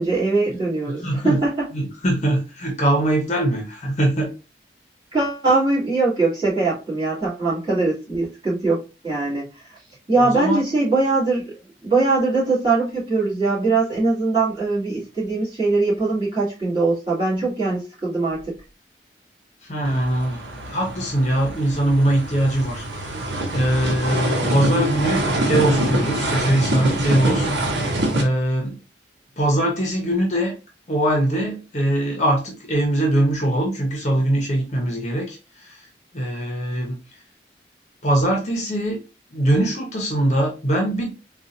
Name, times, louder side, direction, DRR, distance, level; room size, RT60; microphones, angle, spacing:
voice 1, 0.0-1.7 5.1-8.8 9.0-9.6 10.1-11.6 11.8-18.5, right 3 dB, 25° right, -8 dB, 1.9 m, -21 dB
voice 2, 0.9-1.4 1.7-4.3 10.3-10.6 19.7-23.2 23.5-27.5 28.1-28.8 29.4-30.5 30.9-35.8 36.1-37.0 38.0-39.0 39.3-41.1, right 1 dB, 40° left, 1 dB, 0.8 m, -22 dB
sound 1, 19.8-28.2, right 1 dB, 90° right, 0.8 m, -24 dB
3.9 x 2.4 x 2.5 m, 0.31 s
head